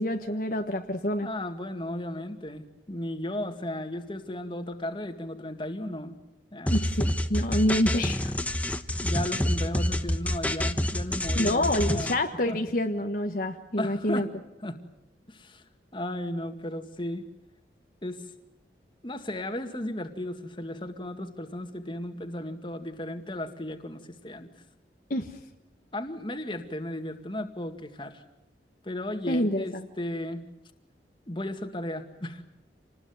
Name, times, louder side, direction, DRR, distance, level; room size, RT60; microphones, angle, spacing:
voice 1, 0.0-1.3 6.7-8.3 11.4-14.3 25.1-25.4 29.3-29.8, left 1 dB, 50° left, 4 dB, 1.4 m, -27 dB
voice 2, 1.2-6.2 6.5-6.8 9.0-12.1 12.5-12.6 13.8-14.3 14.6-14.8 15.3-15.6 15.9-17.3 18.0-18.3 19.0-24.5 25.9-28.2 28.8-30.5 31.3-32.4, left 1 dB, 25° left, 7 dB, 2.1 m, -35 dB
sound 1, 6.7-12.1, left 1 dB, 10° left, 1.1 m, -27 dB
28.0 x 20.0 x 9.6 m, 0.88 s
head